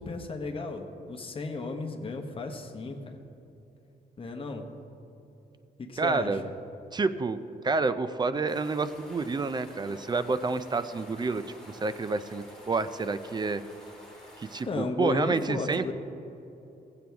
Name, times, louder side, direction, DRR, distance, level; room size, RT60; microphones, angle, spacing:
voice 1, 0.0-3.2 4.2-4.7 5.8-6.3 14.7-15.9, left 3 dB, 30° left, 4 dB, 1.0 m, -34 dB
voice 2, 6.0-6.4 6.9-7.4 7.6-13.6 14.4-15.9, right 4 dB, 25° right, 12 dB, 0.3 m, -29 dB
sound 1, 8.5-14.6, left 1 dB, 5° left, 2.7 m, -50 dB
15.5 x 7.6 x 3.5 m, 2.9 s
wide cardioid pair, 130°, 17 cm